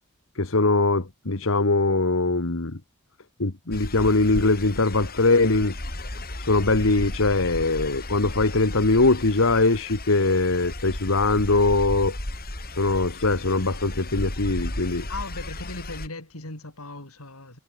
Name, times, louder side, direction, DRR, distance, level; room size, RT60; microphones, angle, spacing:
voice 1, 0.3-2.8 3.4-5.8 6.4-12.2 12.8-15.1, left 3 dB, 65° left, 1.6 m, -22 dB
sound 1, 3.7-16.1, left 1 dB, 45° left, 4.8 m, -35 dB
voice 2, 15.1-17.6, left 2 dB, 90° left, 5.7 m, -37 dB
head